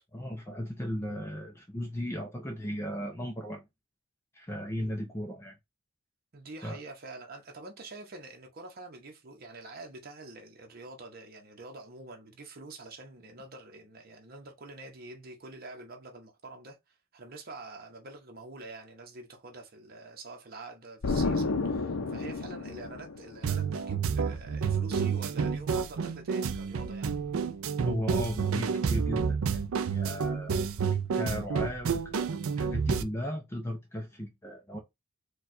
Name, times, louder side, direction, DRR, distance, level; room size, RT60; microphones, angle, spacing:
voice 1, 0.1-3.6 4.3-5.5 6.6-6.8 27.8-29.6 29.9-30.6 30.9-34.8, equal, 10° left, 0.5 m, -36 dB
voice 2, 4.8-5.1 6.3-16.8 17.1-27.1, right 2 dB, 45° right, 0.8 m, -46 dB
Explosion, 21.0-23.7, left 3 dB, 70° left, 0.5 m, -31 dB
sound 1, 23.4-33.0, right 6 dB, 75° right, 0.4 m, -30 dB
4.4 x 2.3 x 2.6 m
head